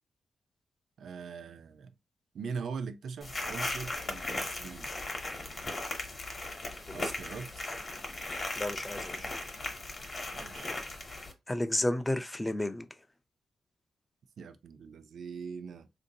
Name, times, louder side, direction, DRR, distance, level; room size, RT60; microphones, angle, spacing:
voice 1, 1.0-1.9 2.3-4.9 6.9-7.7 10.3-10.8 14.4-15.9, right 5 dB, 65° right, 0.4 m, -41 dB
sound 1, 3.2-11.3, left 2 dB, 30° left, 0.8 m, -37 dB
voice 2, 8.6-9.3 11.5-12.9, left 1 dB, 10° left, 0.3 m, -32 dB
3.7 x 2.6 x 2.6 m
wide cardioid pair, 145°, 0 cm